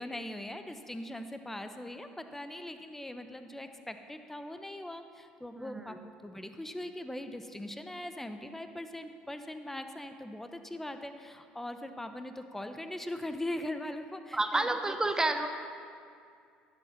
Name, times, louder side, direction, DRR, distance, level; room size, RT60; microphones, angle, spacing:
voice 1, 0.0-6.0 6.2-15.0, left 1 dB, 5° left, 8 dB, 0.8 m, -41 dB
voice 2, 5.6-6.0 14.3-15.5, right 2 dB, 15° right, 7 dB, 1.0 m, -30 dB
11.5 x 8.2 x 5.8 m, 2.3 s
hypercardioid pair, 65°, 4 cm